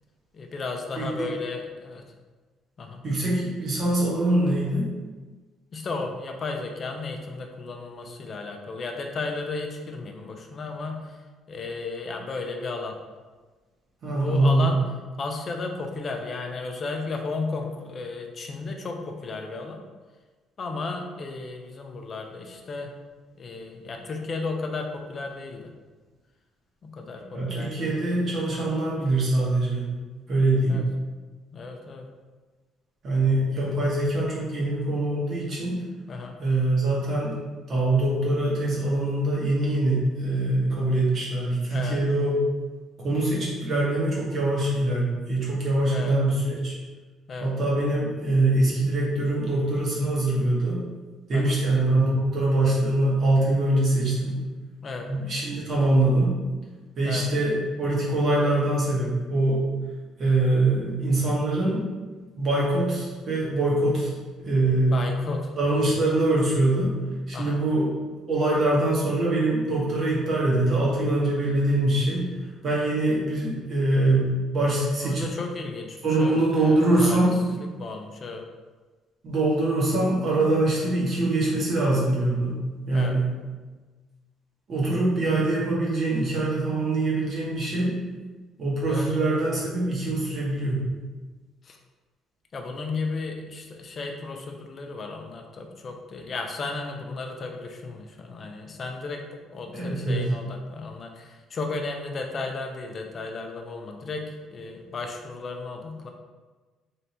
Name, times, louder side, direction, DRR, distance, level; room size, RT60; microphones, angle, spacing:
voice 1, 0.3-2.0 2.8-3.0 5.7-11.2 11.5-13.0 14.1-14.8 15.2-19.8 20.6-22.9 23.4-25.7 26.8-28.4 30.7-30.8 31.5-32.1 36.1-36.4 41.7-42.0 45.9-46.1 47.3-47.5 51.3-51.6 54.8-55.1 57.0-57.3 64.9-65.8 67.3-67.6 75.0-78.4 80.8-80.9 82.9-83.2 88.9-89.1 91.7-91.8 92.5-99.2 99.5-104.3 104.5-106.1, left 3 dB, 30° left, 3 dB, 0.5 m, -34 dB
voice 2, 3.0-4.9 14.0-14.7 27.3-29.9 30.3-30.8 33.0-35.8 36.4-37.4 37.7-42.3 43.0-46.7 47.4-50.8 51.3-54.4 55.1-56.4 57.0-59.6 60.2-61.8 62.3-64.1 64.4-65.0 65.6-66.9 67.3-67.9 68.3-72.4 72.6-75.3 76.0-77.3 79.2-83.3 84.7-88.0 88.6-90.8 99.7-100.3, right 2 dB, 35° right, -6 dB, 1.2 m, -23 dB
3.3 x 2.7 x 4.2 m, 1.3 s
cardioid pair, 165°, 0 cm